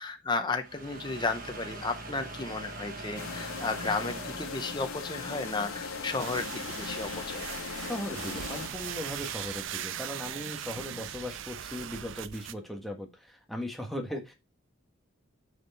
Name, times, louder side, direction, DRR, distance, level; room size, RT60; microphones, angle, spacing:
voice 1, 0.0-7.6, left 3 dB, 20° left, 6 dB, 0.8 m, -34 dB
sound 1, 0.6-9.9, right 2 dB, 45° right, 1.4 m, -44 dB
sound 2, 3.2-8.7, left 5 dB, 80° left, 0.6 m, -39 dB
sound 3, 6.2-12.5, right 10 dB, 65° right, 0.4 m, -39 dB
voice 2, 7.8-14.3, left 1 dB, ahead, 1 dB, 1.3 m, -38 dB
6.2 x 4.5 x 4.3 m, 0.24 s
head